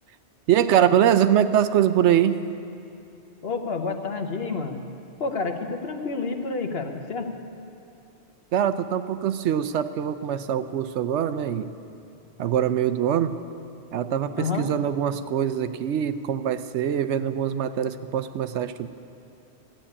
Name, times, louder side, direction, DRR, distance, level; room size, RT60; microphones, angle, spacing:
voice 1, 0.5-2.4 8.5-11.7 12.4-13.3 13.9-18.9, right 10 dB, 90° right, 11 dB, 0.9 m, -23 dB
voice 2, 3.4-4.8 5.2-7.3 14.4-14.7, left 4 dB, 60° left, 5 dB, 1.3 m, -29 dB
13.5 x 8.9 x 9.9 m, 2.7 s
omnidirectional pair, 1.2 m